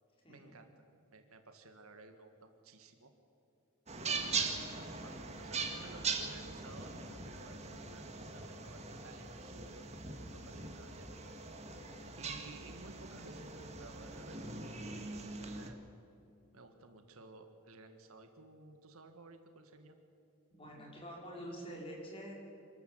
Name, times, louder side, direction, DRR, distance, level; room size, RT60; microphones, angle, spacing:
voice 1, 0.3-0.7 1.1-3.1 4.0-11.1 12.2-14.5 15.1-15.8 16.5-19.9, right 3 dB, 70° right, 6 dB, 1.7 m, -55 dB
sound 1, 3.9-15.7, right 4 dB, 30° right, 1.8 m, -41 dB
voice 2, 20.5-22.3, equal, 25° left, -2 dB, 4.6 m, -46 dB
26.5 x 13.0 x 7.9 m, 2.6 s
head